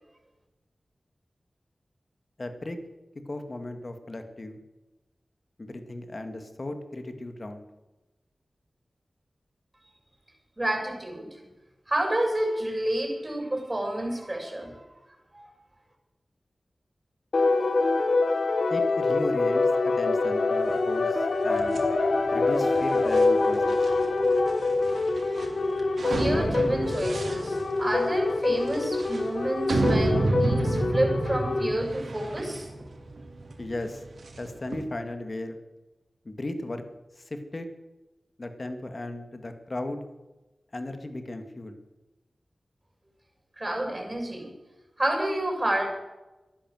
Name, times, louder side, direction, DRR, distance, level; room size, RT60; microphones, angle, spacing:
voice 1, 2.4-2.8 3.3-4.6 5.6-7.7 18.7-21.7 22.3-23.8 33.6-34.0 34.4-35.6 36.2-36.8 37.2-37.7 38.4-40.0 40.7-41.8, left 2 dB, 40° left, 7 dB, 2.1 m, -36 dB
voice 2, 10.6-11.3 11.9-14.8 15.3-15.5 25.7-25.8 26.1-32.7 43.6-44.5 45.0-45.9, right 1 dB, 25° right, 1 dB, 7.0 m, -29 dB
sound 1, 17.3-31.7, left 3 dB, 75° left, 1.4 m, -25 dB
sound 2, 21.6-34.8, right 2 dB, 80° right, 3.1 m, -31 dB
14.5 x 11.5 x 7.9 m, 1.1 s
wide cardioid pair, 70°, 0 cm